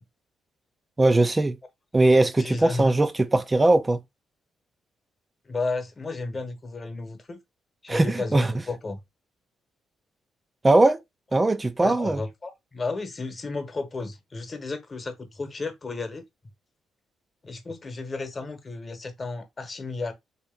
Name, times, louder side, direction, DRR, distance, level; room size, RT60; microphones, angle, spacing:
voice 1, 1.0-1.6 1.9-4.0 7.9-8.5 10.6-11.0 11.3-12.2, right 2 dB, 20° right, 0.3 m, -20 dB
voice 2, 2.4-2.9 5.4-7.4 7.8-9.0 11.8-16.2 17.4-20.1, left 3 dB, 30° left, 1.0 m, -33 dB
3.2 x 2.9 x 3.5 m
cardioid pair, 90°, 0 cm